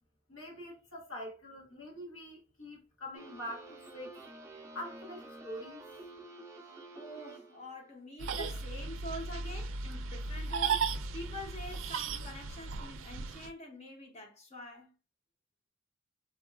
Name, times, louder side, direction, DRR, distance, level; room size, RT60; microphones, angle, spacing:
voice 1, 0.3-4.2 4.7-5.9, equal, 90° left, 1.1 m, -44 dB
sound 1, 3.1-7.8, right 2 dB, 15° right, 0.4 m, -50 dB
voice 2, 6.9-14.9, left 1 dB, 35° left, 0.6 m, -46 dB
sound 2, 8.2-13.5, right 5 dB, 85° right, 0.3 m, -36 dB
3.7 x 2.3 x 2.2 m
head